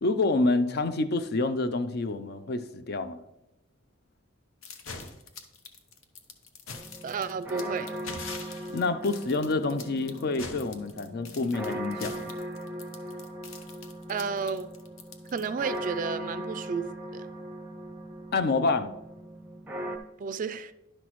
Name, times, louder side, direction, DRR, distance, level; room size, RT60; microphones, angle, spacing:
voice 1, 0.0-3.2 8.7-12.3 18.3-18.9, left 3 dB, 50° left, 0.5 m, -27 dB
sound 1, 4.6-15.8, left 4 dB, 90° left, 0.9 m, -43 dB
sound 2, 6.7-20.0, right 1 dB, 10° right, 0.7 m, -39 dB
voice 2, 7.0-7.9 14.1-14.7 15.3-16.9 17.1-17.3 20.2-20.7, right 5 dB, 40° right, 0.3 m, -32 dB
11.0 x 5.9 x 3.0 m
head